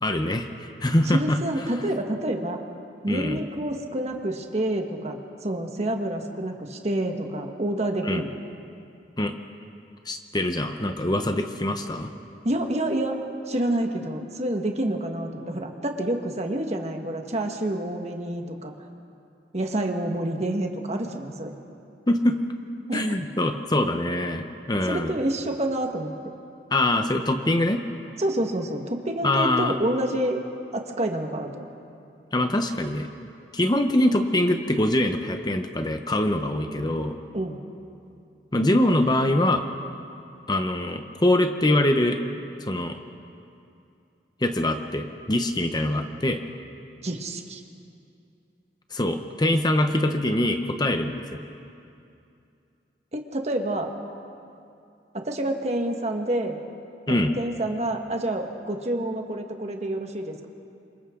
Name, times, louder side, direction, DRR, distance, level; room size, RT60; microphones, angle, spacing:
voice 1, 0.0-0.5 0.8-1.4 3.1-3.4 8.0-8.2 9.2-9.3 10.1-12.1 22.1-22.3 22.9-25.2 26.7-27.8 29.2-29.7 32.3-33.1 33.5-37.1 38.5-39.6 40.5-42.2 42.6-43.0 44.4-46.4 48.9-51.2 57.1-57.4, left 1 dB, 25° left, 6 dB, 0.9 m, -23 dB
voice 2, 1.0-2.6 3.0-8.4 12.4-13.2 13.5-18.7 19.5-21.6 22.9-23.2 24.8-26.2 28.2-30.4 30.7-31.7 37.3-37.6 47.0-47.6 53.1-53.9 55.1-56.6 57.1-60.5, right 1 dB, 40° right, 3 dB, 1.6 m, -28 dB
28.5 x 26.0 x 3.8 m, 2.6 s
head